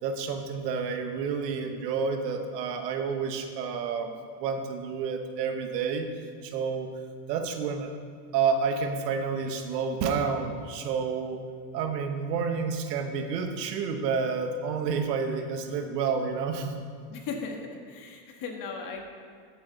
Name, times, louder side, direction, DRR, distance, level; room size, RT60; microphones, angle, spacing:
voice 1, 0.0-6.1 6.4-6.9 7.3-7.9 8.3-11.4 11.7-16.7, right 5 dB, 90° right, 6 dB, 1.3 m, -29 dB
voice 2, 17.1-17.6 17.9-19.1, left 5 dB, 45° left, 2 dB, 1.8 m, -37 dB
13.0 x 8.1 x 4.0 m, 2.1 s
supercardioid pair, 125°, 48 cm